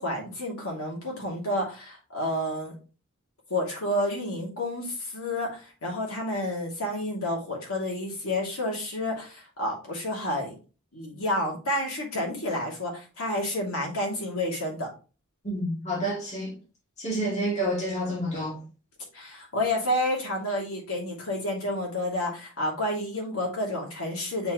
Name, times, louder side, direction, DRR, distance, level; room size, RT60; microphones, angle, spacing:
voice 1, 0.0-2.7 3.5-10.5 10.9-14.9 19.1-24.5, left 1 dB, 70° left, 2.8 m, -30 dB
voice 2, 15.4-16.5 17.0-18.6, right 1 dB, 30° left, 2.7 m, -29 dB
6.9 x 4.6 x 3.1 m
head